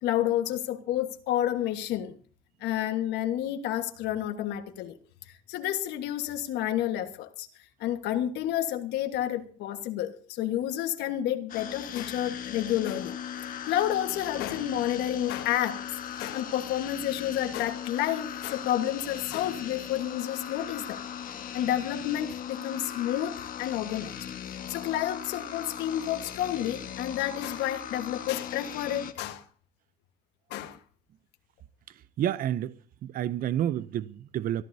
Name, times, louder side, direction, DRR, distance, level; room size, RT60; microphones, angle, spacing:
voice 1, 0.0-2.1 2.6-5.0 5.5-7.5 7.8-13.1 13.7-15.8 16.2-21.0 21.5-24.2 24.7-29.4 30.5-30.8, left 12 dB, 85° left, 1.5 m, -30 dB
sound 1, 11.5-29.1, left 9 dB, 55° left, 1.5 m, -38 dB
voice 2, 32.2-32.7 33.0-34.6, right 11 dB, 55° right, 0.6 m, -29 dB
25.0 x 14.0 x 2.8 m
cardioid pair, 110°, 17 cm